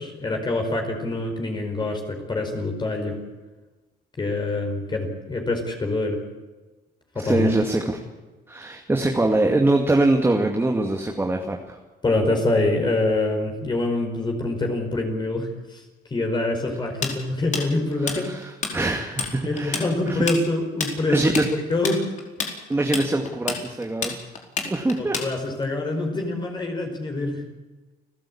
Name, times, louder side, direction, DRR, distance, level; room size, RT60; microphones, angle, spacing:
voice 1, 0.0-3.2 4.2-6.2 7.1-7.5 12.0-15.8 16.1-18.3 19.4-21.2 21.7-22.1 25.0-27.5, left 2 dB, 25° left, 3 dB, 4.9 m, -25 dB
voice 2, 7.2-8.0 8.5-11.8 18.0-20.2 21.1-21.4 22.7-24.2 24.6-25.2, right 2 dB, 15° right, 2 dB, 2.3 m, -23 dB
Tools, 17.0-18.7 19.0-19.3 19.6-25.6, left 5 dB, 45° left, 4.8 m, -28 dB
29.0 x 15.0 x 8.7 m, 1.2 s
cardioid pair, 110°, 17 cm